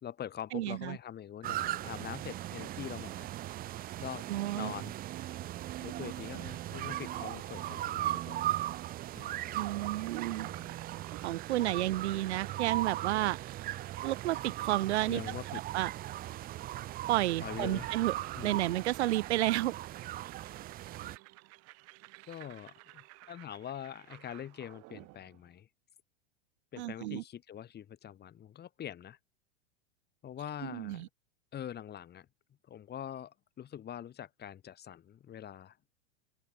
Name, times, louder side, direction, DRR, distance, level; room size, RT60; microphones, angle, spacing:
voice 1, 0.0-3.3 4.0-4.3 4.5-5.0 5.8-8.5 9.2-9.4 10.3-10.7 11.6-11.9 15.1-15.6 17.4-17.9 18.4-18.7 22.3-25.7 26.7-29.2 30.2-31.1 31.5-32.3 32.7-35.8, left 10 dB, 30° left, 3.6 m, -44 dB
voice 2, 0.5-1.0 4.3-4.7 9.5-10.5 11.2-13.4 14.0-15.2 15.7-15.9 17.1-18.1 18.4-19.7 26.8-27.2 30.6-31.1, right 16 dB, 70° right, 0.9 m, -31 dB
sound 1, 1.4-21.2, right 14 dB, 25° right, 0.6 m, -38 dB
sound 2, 9.2-25.5, right 23 dB, 45° right, 2.6 m, -53 dB
open air
hypercardioid pair, 105°, 34 cm